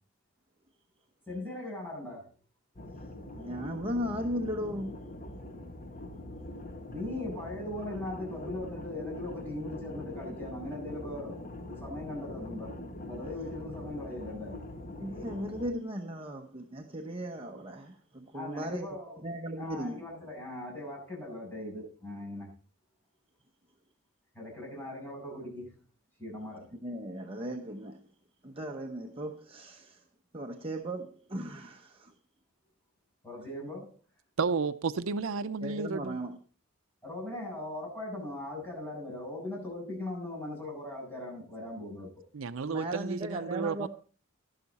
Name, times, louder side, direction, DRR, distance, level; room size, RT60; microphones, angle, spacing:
voice 1, 1.3-2.3 6.9-12.7 13.1-14.6 18.3-19.2 19.5-22.5 24.3-25.7 26.2-26.7 33.2-33.9 37.0-42.1, left 1 dB, 10° left, 7.5 m, -39 dB
sound 1, 2.8-15.7, left 1 dB, 40° left, 1.2 m, -43 dB
voice 2, 3.3-5.0 15.0-18.9 19.2-20.0 26.8-28.0 28.4-30.0 30.3-32.1 35.6-36.4 42.6-43.9, equal, 25° right, 0.9 m, -37 dB
voice 3, 34.4-36.2 42.3-43.9, right 4 dB, 75° right, 0.5 m, -32 dB
12.0 x 11.5 x 4.1 m
head